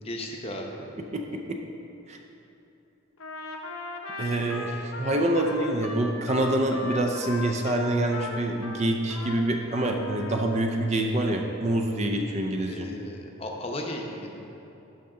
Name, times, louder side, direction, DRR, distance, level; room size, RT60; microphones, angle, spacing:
voice 1, 0.0-0.8 12.7-14.5, left 1 dB, 30° left, 1 dB, 0.8 m, -36 dB
voice 2, 1.1-1.6 2.1-2.2 4.2-12.9, right 1 dB, 30° right, 3 dB, 0.5 m, -26 dB
Trumpet, 3.2-9.4 9.7-10.5, left 2 dB, 80° left, 0.8 m, -37 dB
12.0 x 5.8 x 3.8 m, 2.9 s
head